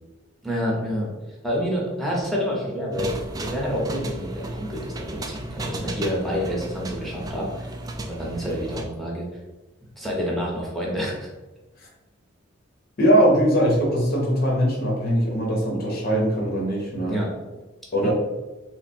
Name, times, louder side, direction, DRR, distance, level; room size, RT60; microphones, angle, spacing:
voice 1, 0.4-1.1 1.4-7.7 8.0-9.3 10.0-11.3 17.0-17.3 18.0-18.1, equal, ahead, -4 dB, 0.9 m, -28 dB
sound 1, 2.9-8.8, right 1 dB, 20° right, 0.3 m, -34 dB
voice 2, 13.0-17.2 17.9-18.1, equal, 50° left, -2 dB, 0.9 m, -21 dB
3.5 x 2.2 x 4.2 m, 1.1 s
head